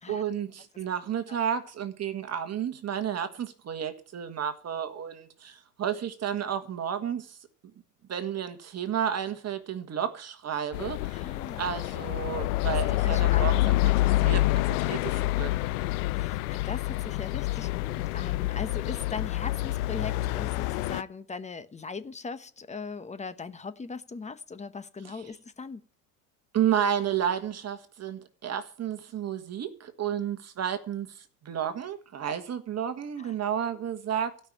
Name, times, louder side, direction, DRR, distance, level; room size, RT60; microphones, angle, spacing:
voice 1, 0.1-7.4 8.1-13.9 14.2-15.6 25.0-25.2 26.5-31.2 31.4-34.3, right 9 dB, 35° right, 1.7 m, -32 dB
sound 1, 10.7-21.0, left 18 dB, 75° left, 0.6 m, -27 dB
voice 2, 11.1-11.8 12.7-13.5 14.2-14.4 16.1-25.8 33.2-33.3, left 4 dB, 15° left, 1.1 m, -39 dB
16.5 x 5.9 x 8.8 m
supercardioid pair, 95°, 45 cm